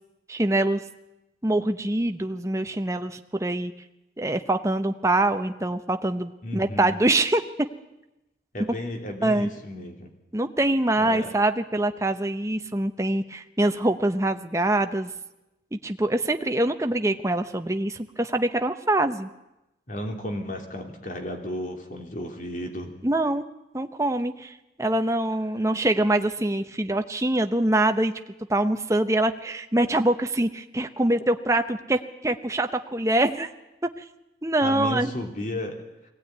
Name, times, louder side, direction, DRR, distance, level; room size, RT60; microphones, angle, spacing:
voice 1, 0.3-0.8 1.4-3.7 4.2-7.4 9.2-9.5 10.3-15.1 15.7-19.3 23.0-23.5 23.7-28.1 28.5-33.5 34.4-35.1, right 1 dB, 15° right, 7 dB, 0.9 m, -24 dB
voice 2, 6.4-7.0 8.5-10.1 11.0-11.3 19.9-22.9 34.6-35.8, left 1 dB, 50° left, 3 dB, 3.1 m, -33 dB
22.0 x 17.0 x 9.5 m, 0.95 s
head